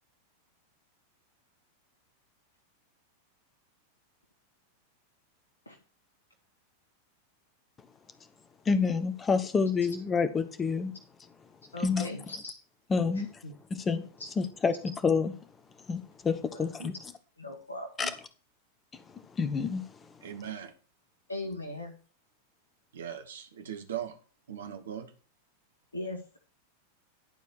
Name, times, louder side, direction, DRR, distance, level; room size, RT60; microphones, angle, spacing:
voice 1, 8.7-10.9 11.8-12.1 12.9-13.3 13.7-14.0 14.4-15.3 15.9-16.9 18.0-18.1 19.4-19.8, left 5 dB, 20° left, 1.1 m, -28 dB
voice 2, 11.7-12.5 13.1-13.5 14.2-14.3 16.5-16.9 17.4-18.1 21.3-21.9 25.9-26.4, left 1 dB, 80° left, 1.6 m, -39 dB
voice 3, 20.2-20.7 22.9-24.1 24.5-25.1, right 9 dB, 65° right, 1.5 m, -39 dB
11.0 x 4.8 x 6.3 m
figure-of-eight pair, 90°, 0 cm